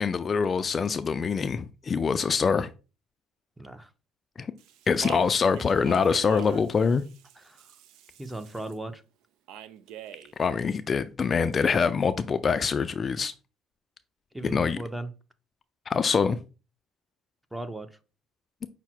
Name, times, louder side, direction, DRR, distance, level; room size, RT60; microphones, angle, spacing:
voice 1, 0.0-2.7 4.4-4.5 4.9-7.0 10.4-13.3 14.4-14.8 15.9-16.4, left 5 dB, 40° left, 0.3 m, -24 dB
voice 2, 3.6-3.9 7.4-7.7 8.2-9.0 14.3-15.1 17.5-18.0, right 2 dB, 10° right, 0.7 m, -37 dB
Speech, 4.6-8.7 9.5-10.3, right 10 dB, 75° right, 0.4 m, -43 dB
5.6 x 2.0 x 4.3 m
supercardioid pair, 80°, 0 cm